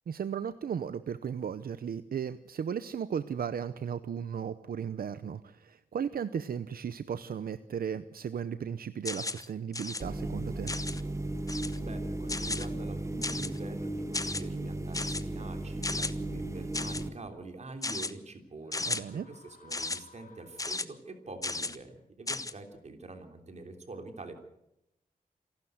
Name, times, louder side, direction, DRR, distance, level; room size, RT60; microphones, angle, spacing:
voice 1, 0.1-10.7 18.8-19.3, right 7 dB, 80° right, 12 dB, 0.7 m, -35 dB
sound 1, 9.1-9.5 9.7-10.0 10.7-11.0 11.5-11.8 12.3-12.7 13.2-13.6 14.1-14.4 14.9-15.2 15.8-16.1 16.7-17.0 17.8-18.1 18.7-19.0 19.7-20.0 20.6-20.8 21.4-21.8 22.3-22.5, left 3 dB, 25° left, 0.9 m, -34 dB
sound 2, 10.0-17.1, right 2 dB, 20° right, 1.9 m, -36 dB
voice 2, 11.8-24.4, right 2 dB, 50° right, 5 dB, 3.2 m, -45 dB
sound 3, 18.6-21.2, left 5 dB, 70° left, 3.7 m, -59 dB
27.5 x 12.0 x 7.9 m, 0.85 s
wide cardioid pair, 125°, 15 cm